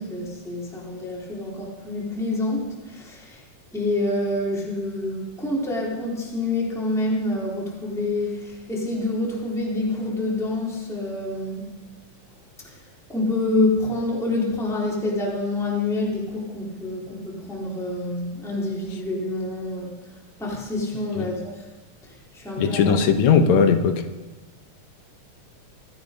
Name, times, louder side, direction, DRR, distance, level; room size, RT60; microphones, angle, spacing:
voice 1, 0.0-3.4 3.7-11.7 12.7-12.8 13.1-20.0 20.4-21.6 22.0-23.0, left 2 dB, ahead, -5 dB, 3.5 m, -27 dB
voice 2, 22.6-24.0, left 6 dB, 75° left, 7 dB, 2.3 m, -18 dB
26.0 x 9.8 x 5.3 m, 1.2 s
omnidirectional pair, 3.4 m